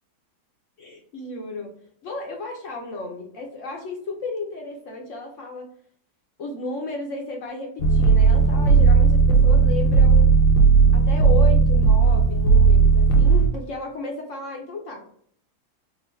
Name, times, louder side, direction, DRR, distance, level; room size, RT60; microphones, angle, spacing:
voice 1, 0.8-1.7 2.0-5.7 6.4-10.3 10.9-15.1, left 2 dB, 60° left, 1 dB, 0.8 m, -33 dB
sound 1, 7.8-13.5, right 5 dB, 80° left, 1.2 m, -15 dB
3.7 x 2.5 x 3.2 m, 0.62 s
omnidirectional pair, 1.7 m